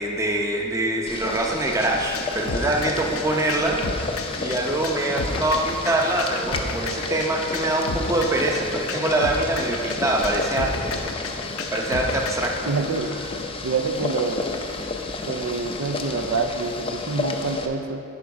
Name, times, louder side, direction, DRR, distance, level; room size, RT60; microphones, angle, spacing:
voice 1, 0.0-10.9 11.7-12.7, right 1 dB, 15° right, 0 dB, 0.7 m, -24 dB
Boiling, 1.1-17.7, left 3 dB, 25° left, 0.5 m, -32 dB
sound 1, 1.8-12.5, left 4 dB, 70° left, 0.6 m, -32 dB
voice 2, 12.7-13.1 13.6-14.5 15.3-18.0, right 4 dB, 70° right, 7 dB, 0.4 m, -26 dB
10.5 x 5.0 x 4.8 m, 2.8 s
head